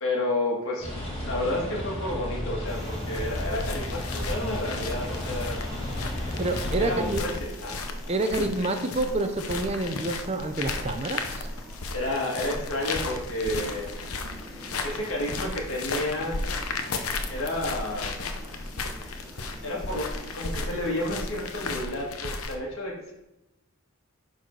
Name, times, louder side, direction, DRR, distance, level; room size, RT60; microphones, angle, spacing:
voice 1, 0.0-0.9 1.3-5.9 6.8-7.8 8.3-8.4 11.9-13.9 14.8-16.4 17.3-18.4 19.6-22.9, left 1 dB, 65° left, -2 dB, 2.2 m, -31 dB
sound 1, 0.8-7.1, left 1 dB, 25° left, 2.1 m, -33 dB
sound 2, 2.7-21.7, equal, ahead, 2.4 m, -47 dB
sound 3, 3.1-22.5, left 3 dB, 80° left, 0.9 m, -34 dB
voice 2, 6.4-7.2 8.1-11.5, right 2 dB, 30° right, 7 dB, 0.6 m, -28 dB
11.0 x 4.1 x 4.7 m, 0.93 s
head